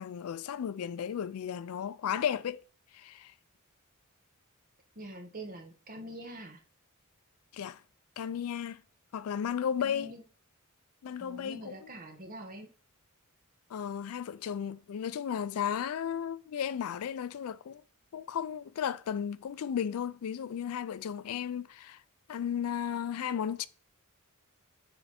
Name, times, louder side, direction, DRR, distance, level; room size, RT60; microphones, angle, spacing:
voice 1, 0.0-2.6 2.9-3.3 7.5-7.8 8.2-8.8 9.1-10.1 11.0-11.7 13.7-17.8 18.1-22.0 22.3-23.7, left 8 dB, 70° left, 0.3 m, -34 dB
voice 2, 4.9-6.6 9.8-10.2 11.2-12.7, right 1 dB, 40° right, 1.3 m, -45 dB
6.8 x 3.4 x 4.2 m
head